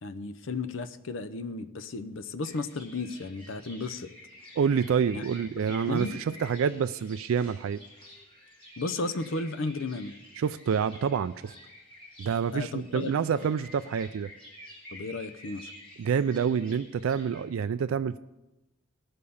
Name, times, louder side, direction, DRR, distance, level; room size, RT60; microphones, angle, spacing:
voice 1, 0.0-4.1 5.1-5.2 5.9-6.2 8.8-10.2 12.5-13.1 13.4-13.5 14.9-15.7, left 3 dB, 65° left, 12 dB, 0.7 m, -34 dB
sound 1, 2.4-17.4, left 1 dB, 25° left, 3.9 m, -50 dB
voice 2, 4.6-7.8 10.4-11.5 12.2-14.3 16.0-18.2, right 7 dB, 75° right, 11 dB, 0.3 m, -27 dB
18.0 x 6.7 x 5.4 m, 1.0 s
head